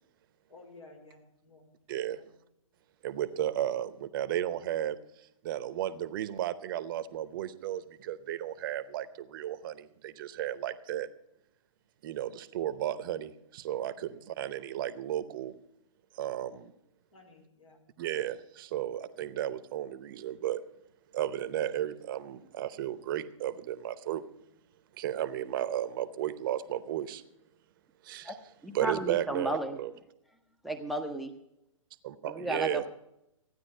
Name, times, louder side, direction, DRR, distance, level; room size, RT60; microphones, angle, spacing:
voice 1, 0.5-2.3 3.7-3.9 13.9-14.5 17.1-17.8, left 2 dB, 75° left, 3 dB, 4.6 m, -56 dB
voice 2, 1.9-2.2 3.0-11.1 12.0-15.6 16.1-16.7 18.0-20.6 21.1-24.2 25.0-27.2 28.0-28.3 28.7-29.9 32.0-32.8, right 12 dB, 40° right, 13 dB, 0.8 m, -34 dB
voice 3, 28.6-29.8 30.6-31.3 32.2-32.9, right 1 dB, ahead, 7 dB, 0.6 m, -34 dB
15.0 x 9.7 x 5.4 m, 0.83 s
hypercardioid pair, 130°, 17 cm